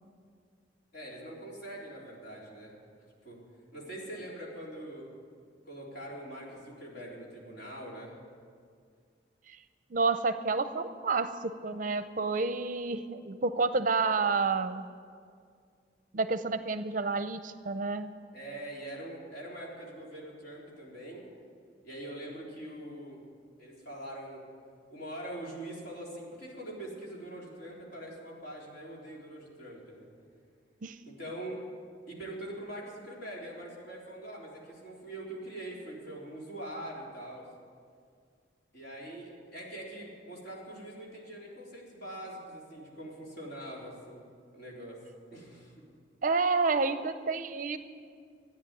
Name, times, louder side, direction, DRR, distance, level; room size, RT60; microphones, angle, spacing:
voice 1, 0.9-2.7 3.2-3.4 3.7-5.1 5.7-8.1 18.3-21.2 21.8-23.2 23.6-24.5 24.9-30.1 31.1-31.6 32.1-37.4 38.7-44.2 44.5-45.0 45.3-45.8, right 1 dB, 60° left, -4 dB, 4.1 m, -43 dB
voice 2, 9.9-14.8 16.1-18.1 30.8-31.0 46.2-47.8, right 4 dB, 45° right, 11 dB, 0.6 m, -29 dB
14.0 x 10.0 x 9.2 m, 2.2 s
head